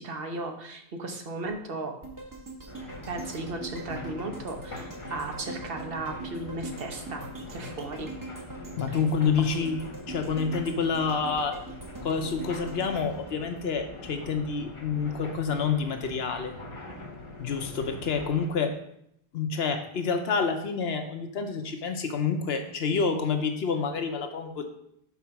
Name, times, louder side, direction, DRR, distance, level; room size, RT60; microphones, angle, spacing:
voice 1, 0.0-1.9 3.1-8.1 9.5-9.6, right 2 dB, 65° right, 4 dB, 1.2 m, -36 dB
sound 1, 2.0-14.2 14.6-14.7, right 2 dB, 20° right, 1.1 m, -42 dB
sound 2, 2.7-18.5, left 2 dB, 30° left, 0.9 m, -43 dB
voice 2, 8.8-11.6 12.0-16.5 17.4-18.7 19.3-24.7, left 5 dB, 75° left, 6 dB, 1.0 m, -28 dB
5.9 x 4.1 x 5.8 m, 0.73 s
omnidirectional pair, 1.1 m